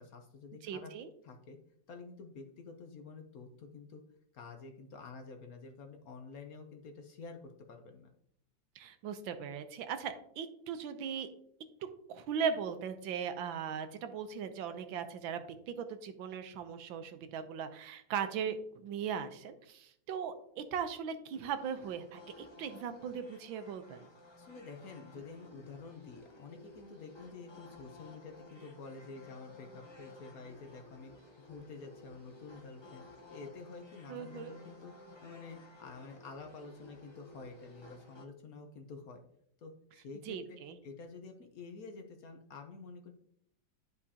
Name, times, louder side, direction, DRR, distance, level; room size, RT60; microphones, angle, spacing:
voice 1, 0.0-0.9 1.2-1.6 1.9-4.0 4.3-8.1 24.4-33.0 33.3-34.9 35.2-39.2 39.6-43.1, left 4 dB, 60° left, 5 dB, 1.1 m, -49 dB
voice 2, 0.6-1.1 8.8-11.3 12.1-24.1 34.1-34.5 40.3-40.8, right 7 dB, 90° right, 9 dB, 1.5 m, -38 dB
sound 1, 21.3-38.3, left 2 dB, 25° left, 0.5 m, -55 dB
10.5 x 4.9 x 2.8 m, 0.69 s
omnidirectional pair, 2.1 m